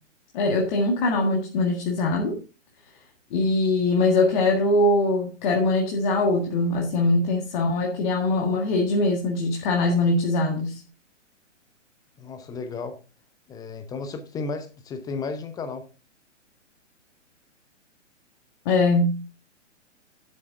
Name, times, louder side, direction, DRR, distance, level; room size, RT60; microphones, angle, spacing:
voice 1, 0.3-2.4 3.3-10.8 18.7-19.1, left 2 dB, 40° left, 1 dB, 1.8 m, -22 dB
voice 2, 12.2-13.0 13.5-15.9, left 4 dB, 10° left, 9 dB, 0.7 m, -33 dB
11.5 x 7.2 x 3.6 m, 0.32 s
figure-of-eight pair, 120°, 38 cm